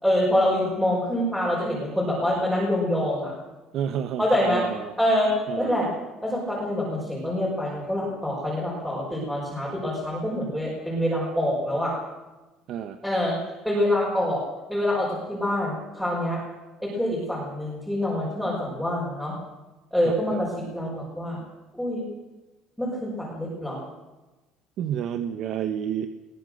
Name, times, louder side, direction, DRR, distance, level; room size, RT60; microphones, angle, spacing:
voice 1, 0.0-3.3 4.2-4.7 5.0-5.9 6.2-11.9 13.0-14.4 14.7-16.4 16.8-19.4 19.9-21.4 21.7-22.0 22.8-23.8, left 1 dB, ahead, -5 dB, 5.7 m, -26 dB
voice 2, 3.7-4.9 5.5-5.7 12.7-13.0 20.3-20.4 24.8-26.1, right 9 dB, 50° right, 9 dB, 1.2 m, -30 dB
22.0 x 19.5 x 6.5 m, 1.1 s
cardioid pair, 155°, 0 cm